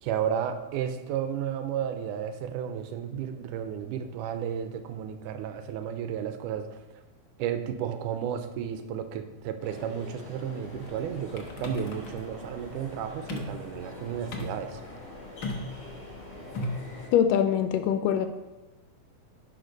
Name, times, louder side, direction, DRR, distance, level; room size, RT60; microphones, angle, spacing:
voice 1, 0.0-6.8 7.4-14.8, right 9 dB, 80° right, 9 dB, 2.1 m, -33 dB
sound 1, 9.6-17.1, left 1 dB, 20° left, 3.5 m, -44 dB
sound 2, 10.6-17.0, left 1 dB, 70° left, 1.1 m, -38 dB
voice 2, 17.1-18.3, left 9 dB, 85° left, 8 dB, 2.2 m, -23 dB
10.5 x 5.1 x 5.3 m, 1.1 s
omnidirectional pair, 3.7 m